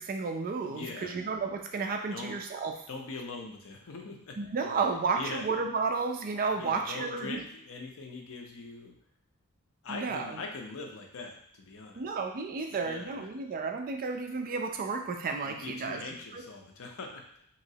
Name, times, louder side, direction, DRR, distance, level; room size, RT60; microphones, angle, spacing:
voice 1, 0.0-2.7 4.4-7.4 9.9-10.4 11.9-16.0 16.3-16.4, right 4 dB, 40° right, 4 dB, 0.4 m, -32 dB
voice 2, 0.7-1.2 2.1-2.4 2.9-4.4 4.6-4.8 5.2-5.5 6.5-8.9 9.8-12.1 12.8-13.1 15.4-17.5, left 3 dB, 65° left, 2 dB, 0.6 m, -42 dB
3.0 x 2.9 x 2.7 m, 0.65 s
head